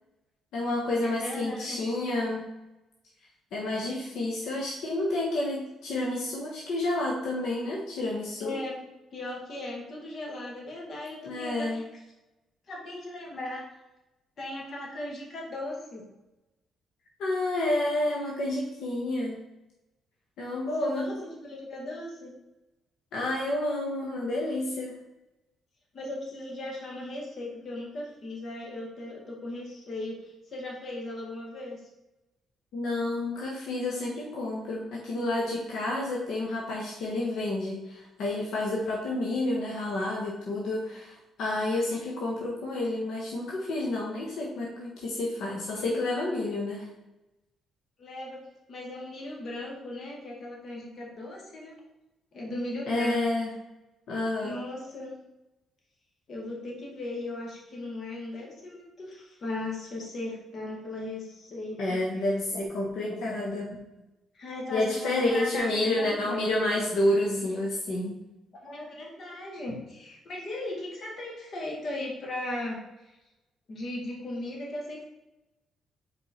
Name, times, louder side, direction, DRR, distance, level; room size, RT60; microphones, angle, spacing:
voice 1, 0.5-2.5 3.5-8.5 11.2-11.8 17.2-19.4 20.4-21.1 23.1-25.0 32.7-46.9 52.9-53.5 54.1-54.6 61.8-63.7 64.7-68.2, left 2 dB, 80° left, -3 dB, 1.3 m, -29 dB
voice 2, 1.0-1.9 8.4-8.8 9.1-12.0 12.7-13.6 14.4-16.1 20.8-22.3 25.9-31.8 48.0-51.8 52.3-53.2 54.4-55.2 56.3-62.1 64.3-66.4 68.5-73.1 73.7-75.0, left 1 dB, 50° left, -1 dB, 2.0 m, -37 dB
4.9 x 4.8 x 4.3 m, 0.97 s
cardioid pair, 90°, 0 cm